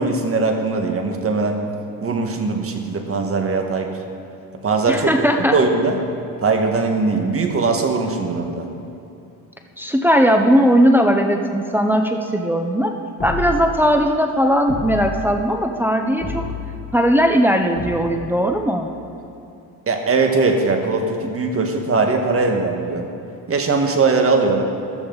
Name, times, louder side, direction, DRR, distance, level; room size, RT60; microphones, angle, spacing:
voice 1, 0.0-1.7 2.0-4.0 4.6-5.1 5.5-6.0 6.4-8.7 19.9-23.1 23.5-24.6, right 3 dB, 40° right, 4 dB, 1.7 m, -20 dB
voice 2, 4.9-5.5 9.8-12.9 13.2-16.4 16.9-18.9, equal, 5° right, 3 dB, 0.8 m, -18 dB
sound 1, 13.2-13.8 14.7-15.3 16.2-16.8 17.8-18.4, left 3 dB, 30° left, 1.8 m, -29 dB
15.0 x 13.0 x 4.0 m, 2.7 s
cardioid pair, 95°, 36 cm